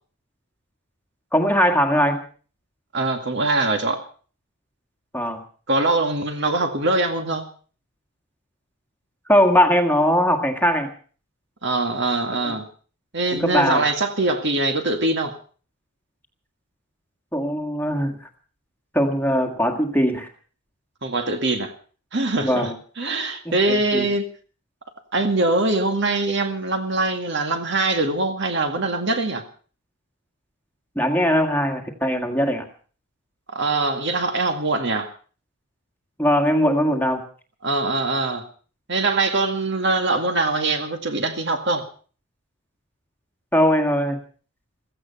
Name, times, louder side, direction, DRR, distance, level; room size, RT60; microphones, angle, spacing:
voice 1, 1.3-2.2 5.1-5.4 9.3-10.9 12.4-12.6 13.3-13.9 17.3-18.2 18.9-20.3 22.4-22.8 23.5-24.1 31.0-32.7 36.2-37.2 43.5-44.2, equal, 10° left, 1.7 m, -20 dB
voice 2, 2.9-4.0 5.7-7.5 11.6-12.6 13.1-15.3 21.0-21.7 22.1-22.7 23.0-24.3 25.1-29.4 33.5-35.1 37.6-38.5 38.9-41.8, right 2 dB, 50° right, 2.2 m, -23 dB
16.0 x 15.0 x 5.6 m
head